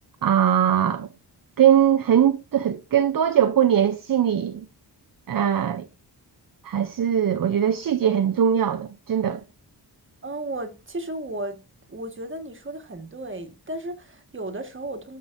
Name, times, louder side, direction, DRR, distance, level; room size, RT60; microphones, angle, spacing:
voice 1, 0.2-1.1 1.6-4.7 5.3-5.9 6.6-9.4, right 9 dB, 50° right, 0.7 m, -21 dB
voice 2, 10.2-11.6 11.9-15.2, right 1 dB, 30° right, 1.7 m, -34 dB
13.0 x 5.9 x 2.7 m
wide cardioid pair, 110°, 42 cm